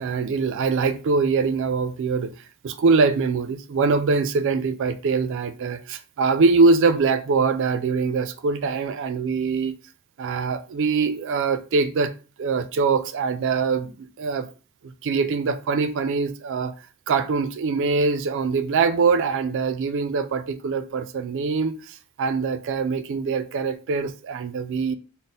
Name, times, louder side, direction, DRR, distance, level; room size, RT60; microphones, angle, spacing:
voice 1, 0.0-2.3 2.6-9.8 10.2-12.1 12.4-14.5 15.0-16.7 17.1-25.0, right 4 dB, 60° right, 0.4 m, -23 dB
4.0 x 2.0 x 3.7 m
head